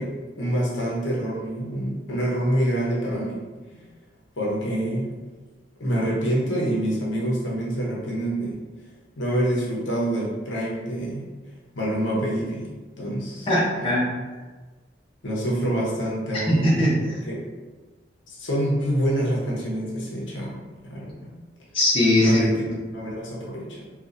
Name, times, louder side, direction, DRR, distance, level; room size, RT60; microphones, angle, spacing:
voice 1, 0.0-3.4 3.7-3.8 4.4-5.1 5.8-8.6 9.2-11.2 11.7-12.7 13.0-13.5 13.8-13.9 15.2-16.7 17.3-17.4 18.3-21.3 22.2-23.8, right 1 dB, 75° left, -4 dB, 0.8 m, -26 dB
voice 2, 13.5-14.1 16.3-17.2 21.7-22.4, left 1 dB, 30° left, -7 dB, 0.8 m, -20 dB
3.7 x 2.4 x 2.6 m, 1.3 s
head